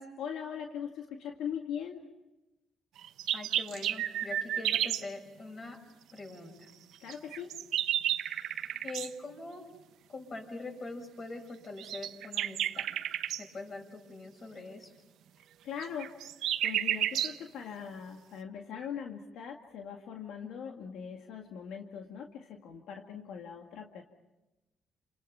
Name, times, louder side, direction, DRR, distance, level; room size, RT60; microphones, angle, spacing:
voice 1, 0.2-2.0 7.0-7.5 15.6-16.2 16.6-24.0, left 8 dB, 85° left, 2 dB, 2.1 m, -41 dB
sound 1, 3.0-5.1 7.1-9.1 11.8-13.4 15.8-17.4, right 11 dB, 85° right, 1.0 m, -31 dB
voice 2, 3.3-5.8 6.1-6.7 8.8-9.7 10.1-12.9 13.4-14.9 20.6-20.8, left 3 dB, 40° left, 3 dB, 7.6 m, -43 dB
29.5 x 28.0 x 5.8 m, 1.0 s
cardioid pair, 90°, 0 cm